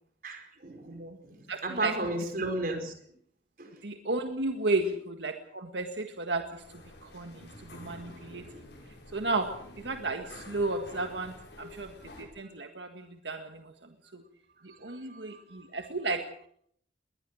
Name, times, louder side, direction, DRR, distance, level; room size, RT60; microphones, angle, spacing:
voice 1, 0.2-2.9 3.6-3.8 14.8-15.6, right 2 dB, 50° right, 5 dB, 5.0 m, -35 dB
voice 2, 0.9-1.2 1.5-1.9 3.8-8.6 9.1-14.2 14.6-16.3, right 2 dB, 85° right, 5 dB, 1.7 m, -34 dB
sound 1, 6.6-12.2, left 1 dB, 85° left, 7.3 m, -49 dB
21.5 x 20.0 x 6.4 m, 0.66 s
head